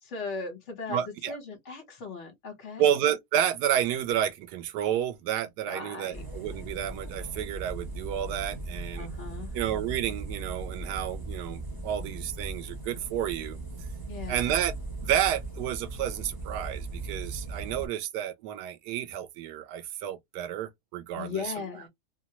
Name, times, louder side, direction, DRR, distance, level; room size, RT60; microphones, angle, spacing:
voice 1, 0.0-2.9 5.7-6.3 9.0-9.5 14.1-14.6 21.1-21.9, left 4 dB, 50° left, 1.3 m, -38 dB
voice 2, 0.9-1.4 2.8-9.1 9.5-13.6 14.3-14.7 15.0-21.5, right 10 dB, 80° right, 1.1 m, -30 dB
sound 1, 6.1-17.9, right 2 dB, 25° right, 0.5 m, -38 dB
2.8 x 2.2 x 2.8 m
omnidirectional pair, 1.7 m